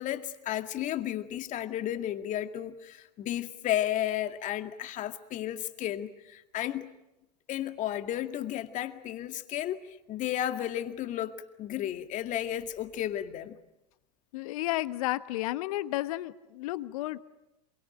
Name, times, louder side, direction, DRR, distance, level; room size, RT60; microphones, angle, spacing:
voice 1, 0.0-6.9 7.5-13.6, left 12 dB, 35° left, 8 dB, 2.1 m, -33 dB
voice 2, 14.3-17.2, left 17 dB, 60° left, 13 dB, 1.4 m, -32 dB
27.5 x 23.0 x 8.8 m, 0.93 s
figure-of-eight pair, 90°, 21 cm